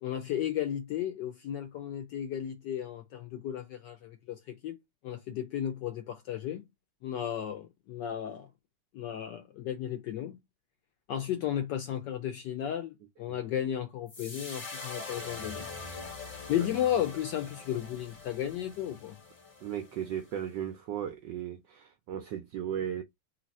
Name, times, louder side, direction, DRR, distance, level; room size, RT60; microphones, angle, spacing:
voice 1, 0.0-4.8 5.0-6.7 7.0-8.5 8.9-10.4 11.1-15.7 16.5-19.2, left 10 dB, 75° left, 1.0 m, -34 dB
sound 1, 14.1-20.4, left 3 dB, 35° left, 0.9 m, -43 dB
voice 2, 19.6-23.0, right 10 dB, 80° right, 0.9 m, -36 dB
3.1 x 2.7 x 4.0 m
omnidirectional pair, 2.4 m